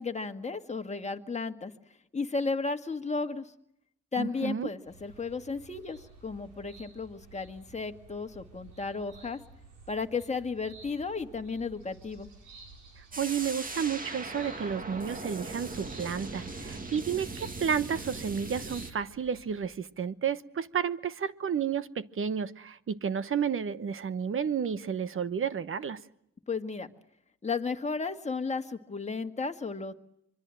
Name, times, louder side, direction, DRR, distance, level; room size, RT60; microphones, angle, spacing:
voice 1, 0.0-1.7 2.1-3.5 4.1-9.4 9.9-12.3 26.5-26.9 27.4-29.9, left 4 dB, 20° left, 6 dB, 1.9 m, -34 dB
voice 2, 4.2-4.7 13.0-26.0, right 7 dB, 45° right, 15 dB, 1.1 m, -31 dB
sound 1, 4.8-19.6, right 3 dB, 85° right, 5.8 m, -53 dB
sound 2, 13.1-18.9, right 3 dB, 30° right, 2.1 m, -39 dB
25.5 x 23.5 x 7.7 m, 0.75 s
cardioid pair, 90°, 30 cm